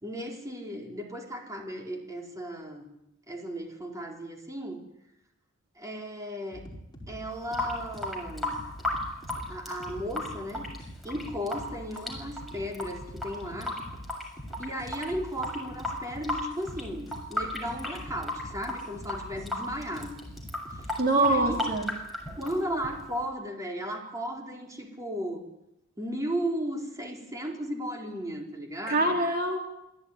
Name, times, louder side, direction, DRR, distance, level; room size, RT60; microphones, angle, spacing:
voice 1, 0.0-2.9 3.3-4.8 5.8-6.6 7.1-8.6 9.5-10.7 11.0-13.8 14.6-20.2 20.8-21.6 22.4-25.5 26.0-29.2, equal, 15° right, 1 dB, 4.3 m, -35 dB
sound 1, 6.5-21.7, equal, 20° left, 5.3 m, -45 dB
Water tap faucet / Sink (filling or washing) / Drip, 7.3-23.3, left 1 dB, ahead, 7.0 m, -36 dB
voice 2, 21.0-21.9 28.9-29.6, right 2 dB, 45° right, 2 dB, 3.3 m, -24 dB
27.0 x 16.5 x 9.9 m, 0.86 s
head